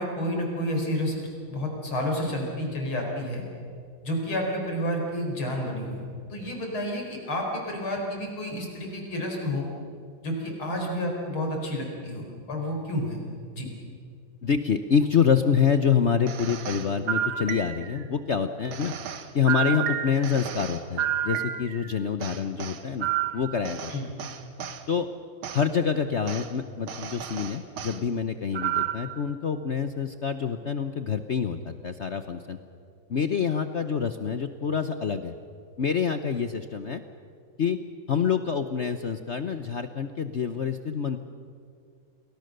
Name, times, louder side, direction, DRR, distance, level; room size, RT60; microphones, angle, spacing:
voice 1, 0.0-3.4 4.0-9.7 10.2-13.2 13.5-13.7 23.9-24.1, equal, 85° left, 1 dB, 5.5 m, -30 dB
voice 2, 14.4-18.9 19.3-24.1 24.9-25.1 25.5-32.6 33.1-35.3 35.8-37.0 37.6-37.8 38.1-41.2, left 6 dB, 55° left, 9 dB, 0.7 m, -26 dB
sound 1, 16.3-18.0 18.7-21.9 22.2-24.8 25.4-25.6 26.3-26.5 26.9-28.0 28.5-29.2, right 9 dB, 85° right, 2.1 m, -31 dB
29.0 x 20.5 x 6.6 m, 2.3 s
omnidirectional pair, 2.2 m